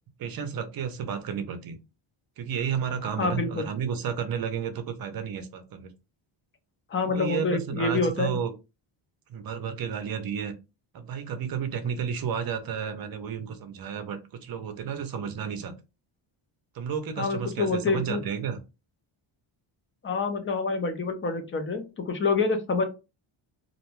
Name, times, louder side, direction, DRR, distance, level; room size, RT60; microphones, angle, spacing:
voice 1, 0.2-1.8 2.4-5.9 7.0-8.5 9.3-10.5 10.9-15.7 16.7-18.6, right 7 dB, 45° right, 8 dB, 0.5 m, -32 dB
voice 2, 3.2-3.7 6.9-8.4 17.2-18.2 20.0-22.8, left 4 dB, 30° left, 7 dB, 0.3 m, -27 dB
2.4 x 2.2 x 3.0 m, 0.28 s
wide cardioid pair, 170°, 50 cm